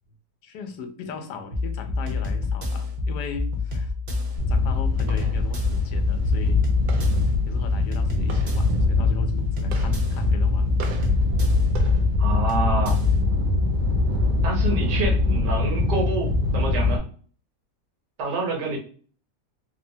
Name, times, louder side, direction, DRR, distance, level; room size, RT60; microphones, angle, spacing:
voice 1, 0.4-3.9 4.5-6.7 7.4-11.2, left 3 dB, 80° left, 6 dB, 1.2 m, -37 dB
sound 1, 1.5-13.2, left 3 dB, 50° right, 0.6 m, -28 dB
sound 2, 4.4-17.0, left 3 dB, 70° right, 0.9 m, -23 dB
voice 2, 12.2-13.0 14.4-17.0 18.2-18.8, right 3 dB, 85° right, 1 dB, 1.5 m, -27 dB
3.4 x 2.1 x 2.6 m, 0.43 s
omnidirectional pair, 1.8 m